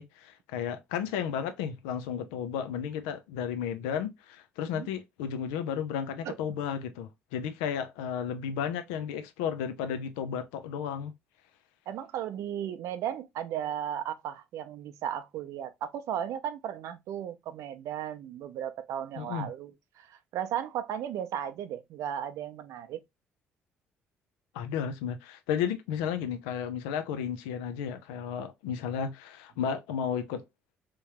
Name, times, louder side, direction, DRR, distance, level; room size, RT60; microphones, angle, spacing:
voice 1, 0.0-11.1 19.2-19.5 24.5-30.4, left 8 dB, 85° left, 0.5 m, -33 dB
voice 2, 11.9-23.0, right 10 dB, 70° right, 0.5 m, -35 dB
3.5 x 3.0 x 2.9 m
hypercardioid pair, 55°, 5 cm